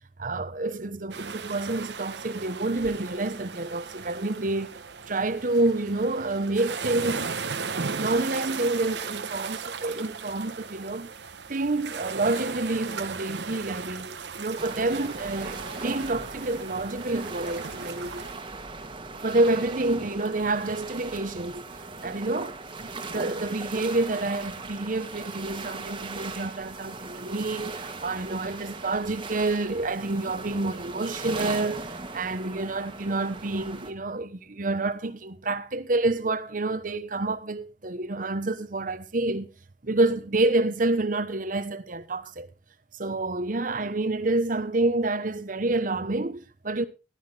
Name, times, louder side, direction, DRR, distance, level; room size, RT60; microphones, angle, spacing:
voice 1, 0.2-4.8 5.1-7.3 7.7-11.1 11.5-18.2 19.2-21.6 22.0-39.5 39.8-42.5 43.0-46.8, right 2 dB, 50° right, 1.1 m, -28 dB
sound 1, 1.1-18.3, right 5 dB, 85° right, 1.1 m, -37 dB
sound 2, 14.6-33.9, right 3 dB, 30° right, 1.8 m, -39 dB
15.0 x 12.5 x 3.4 m
head